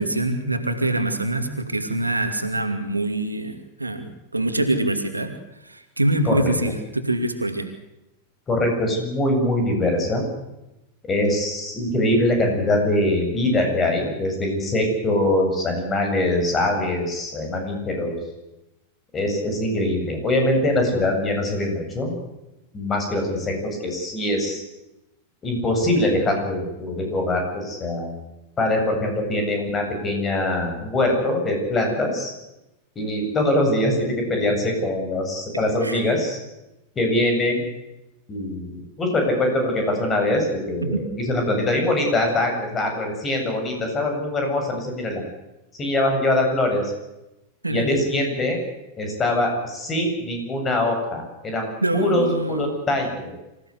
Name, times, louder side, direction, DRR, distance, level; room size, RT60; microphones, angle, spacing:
voice 1, 0.0-5.3 5.6-7.7 35.8-36.0 40.8-41.0 47.6-47.9 51.8-52.7, right 1 dB, 85° right, 7 dB, 2.5 m, -24 dB
voice 2, 8.5-10.2 11.1-18.2 19.1-22.2 22.7-24.6 25.4-28.2 28.6-32.3 33.0-36.4 36.9-37.6 38.3-45.2 45.7-46.9 47.7-48.6 49.0-53.3, left 1 dB, 20° left, 3 dB, 7.9 m, -23 dB
26.0 x 15.5 x 8.2 m, 0.94 s
figure-of-eight pair, 90°, 0 cm